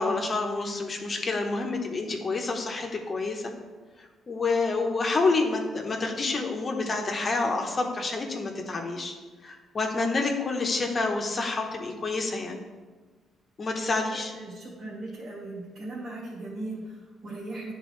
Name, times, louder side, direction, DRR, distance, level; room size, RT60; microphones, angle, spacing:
voice 1, 0.0-3.4 4.3-9.1 9.4-12.6 13.6-14.3, left 3 dB, 35° left, 2 dB, 0.9 m, -28 dB
voice 2, 14.1-17.7, right 2 dB, 55° right, -7 dB, 2.1 m, -38 dB
10.0 x 3.8 x 3.2 m, 1.4 s
cardioid pair, 90°, 0 cm